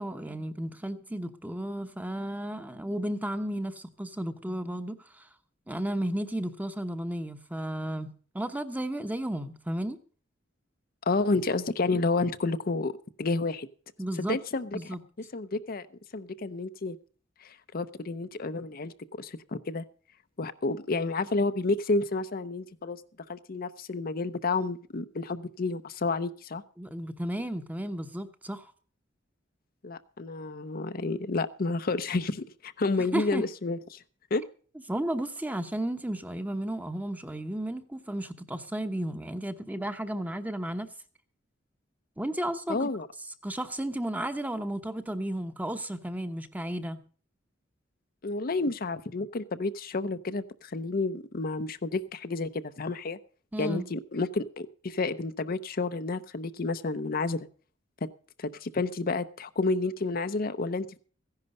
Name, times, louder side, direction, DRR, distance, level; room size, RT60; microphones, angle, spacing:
voice 1, 0.0-5.3 5.7-8.1 8.3-10.0 14.0-14.4 14.7-15.0 26.8-28.7 33.0-33.4 34.9-40.9 42.2-42.9 43.4-47.0 53.5-53.9, right 1 dB, 10° right, 9 dB, 0.9 m, -33 dB
voice 2, 11.1-12.9 13.2-13.7 14.2-14.9 15.3-15.9 16.1-17.0 17.4-19.8 20.4-23.0 23.3-26.6 29.8-34.0 34.3-34.4 42.7-43.1 48.2-52.5 52.8-53.2 53.6-57.5 58.4-61.0, left 3 dB, 50° left, 11 dB, 0.7 m, -30 dB
15.0 x 10.5 x 5.4 m, 0.42 s
head